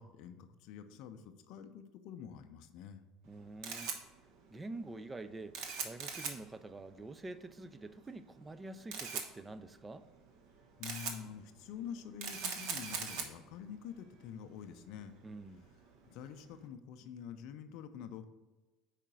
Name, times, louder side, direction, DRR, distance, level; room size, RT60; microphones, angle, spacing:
voice 1, 0.0-3.0 10.8-15.1 16.1-18.3, left 8 dB, 60° left, 0.5 m, -47 dB
Camera, 3.2-16.6, right 6 dB, 60° right, 0.9 m, -44 dB
voice 2, 3.3-3.9 4.5-10.1 15.2-15.6, right 2 dB, 20° right, 0.4 m, -47 dB
4.9 x 4.5 x 6.0 m
hypercardioid pair, 70°, 0 cm